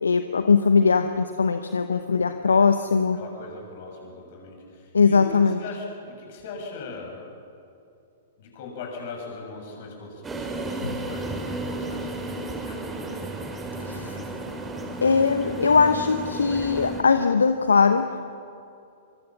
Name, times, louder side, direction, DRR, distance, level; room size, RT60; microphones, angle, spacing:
voice 1, 0.0-3.2 4.9-5.6 10.8-10.9 13.8-14.2 15.0-18.2, left 5 dB, 75° left, 9 dB, 0.9 m, -20 dB
voice 2, 3.1-7.3 8.4-13.3 13.7-14.5, left 3 dB, 50° left, 1 dB, 7.1 m, -40 dB
sound 1, 10.2-17.0, right 2 dB, 15° right, 2.5 m, -33 dB
25.5 x 23.5 x 5.9 m, 2.6 s
figure-of-eight pair, 105°, 0 cm